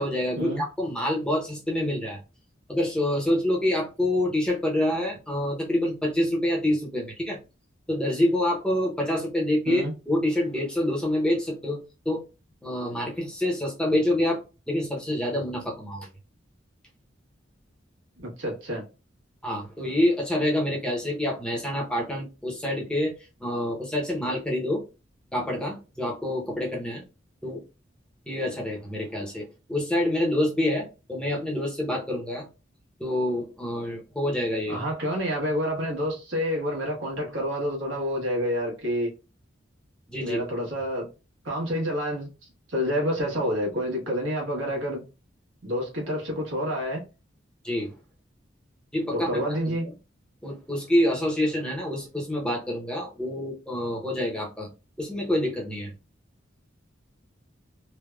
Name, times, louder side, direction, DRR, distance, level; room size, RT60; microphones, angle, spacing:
voice 1, 0.0-2.2 2.7-7.4 7.9-11.8 12.0-12.2 12.6-14.4 14.7-16.1 19.4-23.1 23.4-24.8 25.3-27.0 27.4-27.6 28.3-32.5 33.0-34.8 40.1-40.4 47.6-47.9 48.9-49.9 50.4-54.7 55.0-55.9, left 1 dB, 5° left, 0.7 m, -27 dB
voice 2, 18.2-18.8 34.7-39.1 40.2-41.1 41.4-42.3 42.7-45.0 45.6-47.0 49.1-49.8, equal, 75° right, 1.3 m, -28 dB
3.2 x 2.1 x 2.3 m
head